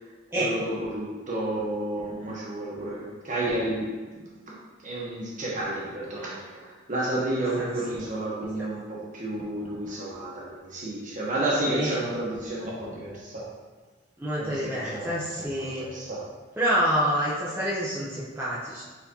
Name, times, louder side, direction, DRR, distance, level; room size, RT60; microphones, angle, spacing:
voice 1, 0.3-13.5 14.4-16.3, right 1 dB, 40° right, -4 dB, 1.0 m, -31 dB
voice 2, 11.7-12.0 14.2-15.9 16.6-18.8, equal, 10° right, -8 dB, 0.6 m, -27 dB
4.3 x 4.1 x 2.8 m, 1.4 s
head